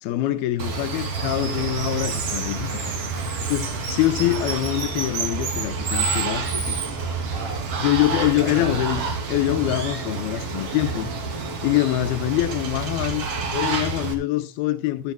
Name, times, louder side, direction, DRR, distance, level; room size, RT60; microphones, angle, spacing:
voice 1, 0.0-2.8 3.5-6.8 7.8-9.0 9.3-11.1 11.6-13.3 13.5-15.1, left 15 dB, 80° left, 2.2 m, -24 dB
Water, 0.6-14.1, right 4 dB, 40° right, 3.1 m, -28 dB
sound 1, 1.5-9.3, right 5 dB, 60° right, 2.5 m, -40 dB
voice 2, 3.0-3.8 4.2-4.4 7.3-8.8 11.5-12.0, left 1 dB, 35° left, 7.7 m, -38 dB
15.0 x 14.0 x 2.2 m
omnidirectional pair, 5.3 m